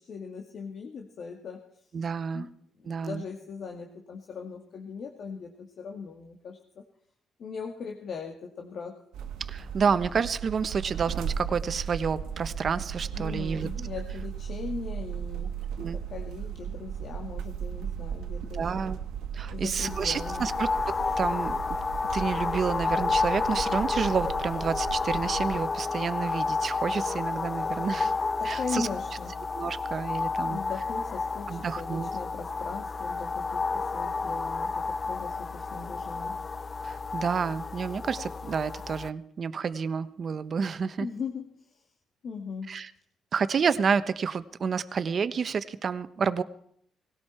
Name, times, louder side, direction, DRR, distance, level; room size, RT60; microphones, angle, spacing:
voice 1, 0.0-1.6 2.3-6.8 7.4-8.9 9.8-10.0 13.1-18.9 19.5-20.5 28.4-29.4 30.4-36.4 41.0-41.8 42.2-42.8, left 5 dB, 60° left, 2 dB, 2.0 m, -39 dB
voice 2, 1.9-2.5 2.9-3.2 9.4-13.7 15.8-16.0 18.5-19.0 19.3-21.6 22.1-28.1 28.4-28.9 29.5-30.6 31.5-32.1 36.8-41.1 42.7-42.9 43.3-46.4, right 6 dB, 50° right, 13 dB, 1.0 m, -29 dB
sound 1, 9.1-25.6, right 8 dB, 90° right, 1.5 m, -36 dB
sound 2, 19.8-39.1, left 4 dB, 30° left, 0.6 m, -31 dB
19.0 x 17.0 x 4.5 m, 0.68 s
cardioid pair, 90°, 0 cm